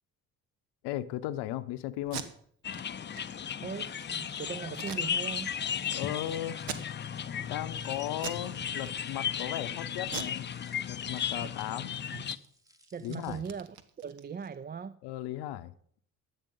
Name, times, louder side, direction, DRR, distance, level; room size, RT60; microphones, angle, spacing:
voice 1, 0.8-2.2 5.9-6.7 7.4-10.5 10.9-11.9 13.0-13.4 15.0-15.7, left 13 dB, 75° left, 0.7 m, -36 dB
Packing tape duct tape, 2.0-2.3 2.7-2.8 3.1-3.2 3.7-4.0 4.7-5.5 5.9-6.0 6.6-7.2 7.6-7.8 8.2-8.5 8.8-9.4 10.0-11.2 11.5-11.6 11.9-14.5, right 8 dB, 70° right, 1.2 m, -42 dB
sound 1, 2.6-12.4, left 8 dB, 25° left, 0.5 m, -35 dB
voice 2, 3.6-5.5 11.4-11.9 12.1-12.2 12.9-15.0, right 6 dB, 25° right, 0.4 m, -40 dB
sound 2, 3.7-13.4, right 1 dB, 10° right, 1.2 m, -59 dB
11.5 x 8.9 x 5.3 m
supercardioid pair, 60°, 40 cm